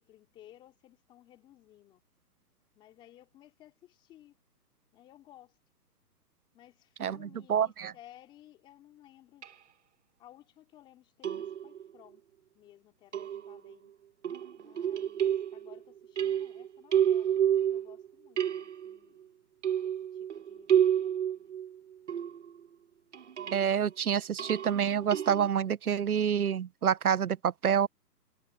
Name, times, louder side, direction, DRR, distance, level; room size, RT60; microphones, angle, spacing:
voice 1, 0.0-2.0 2.8-4.4 4.9-5.6 6.5-9.5 10.2-12.3 12.5-13.9 14.6-15.3 15.5-17.4 17.7-19.2 19.8-21.6, left 13 dB, 10° left, 3.5 m, -57 dB
voice 2, 7.0-7.9 23.5-27.9, right 8 dB, 60° right, 0.8 m, -28 dB
sound 1, 9.4-9.5 11.2-11.9 13.1-13.7 14.2-15.8 16.2-18.1 18.4-19.0 19.6-22.6 23.1-23.7 24.4-25.5, right 9 dB, 45° right, 1.6 m, -30 dB
hypercardioid pair, 175°, 50 cm